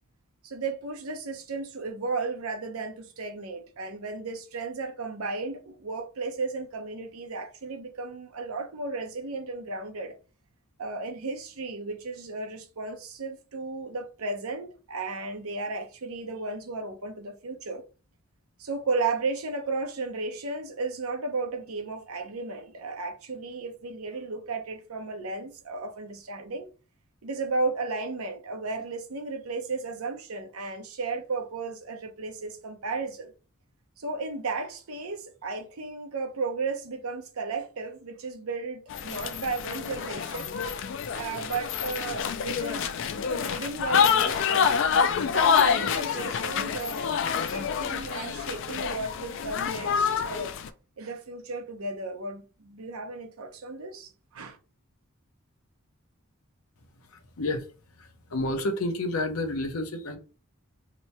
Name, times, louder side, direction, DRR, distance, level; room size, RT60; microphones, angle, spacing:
voice 1, 0.4-10.1 10.8-17.8 18.6-26.7 27.2-33.3 34.0-42.9 43.3-47.1 47.5-50.6 51.0-54.6, right 3 dB, 90° right, 0.7 m, -34 dB
sound 1, 38.9-50.7, left 7 dB, 60° left, 0.3 m, -27 dB
voice 2, 57.1-57.7 58.0-60.2, left 2 dB, 85° left, 0.7 m, -30 dB
2.9 x 2.1 x 4.1 m
head